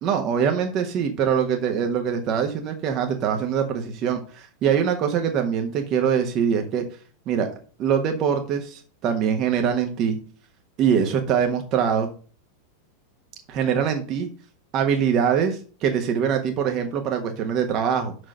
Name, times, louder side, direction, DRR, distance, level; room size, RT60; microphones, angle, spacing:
voice 1, 0.0-6.8 7.3-7.5 7.8-10.2 10.8-12.1 13.5-14.3 14.7-18.1, right 7 dB, 35° right, 4 dB, 1.4 m, -23 dB
6.4 x 6.3 x 6.3 m, 0.39 s
figure-of-eight pair, 90°, 0 cm